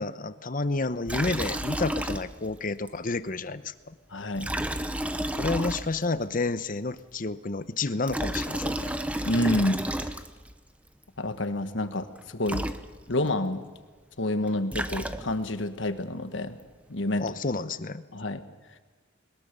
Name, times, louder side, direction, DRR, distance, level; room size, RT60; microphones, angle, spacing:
voice 1, 0.0-3.9 5.4-8.9 17.2-18.0, left 3 dB, 40° left, 13 dB, 0.8 m, -30 dB
Liquid, 1.1-2.6 2.9-3.0 4.3-6.2 7.9-10.5 12.2-12.3 12.4-13.3 14.4-15.6, right 1 dB, 5° right, 0.8 m, -31 dB
voice 2, 4.1-4.5 9.2-10.2 11.2-12.6 13.1-13.6 14.2-16.5 16.9-17.4 18.1-18.4, left 1 dB, 65° left, 9 dB, 1.5 m, -28 dB
22.0 x 20.5 x 6.8 m, 1.4 s
head